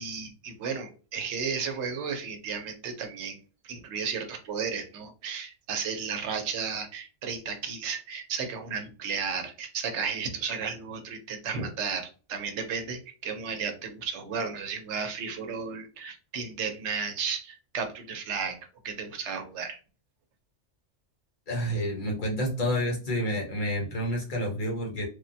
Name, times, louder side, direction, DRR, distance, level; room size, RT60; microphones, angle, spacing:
voice 1, 0.0-3.4 3.6-18.6 18.8-19.8, right 5 dB, 75° right, 6 dB, 0.9 m, -33 dB
voice 2, 21.5-25.1, equal, 45° left, 0 dB, 1.0 m, -29 dB
3.2 x 2.1 x 2.6 m, 0.36 s
omnidirectional pair, 1.2 m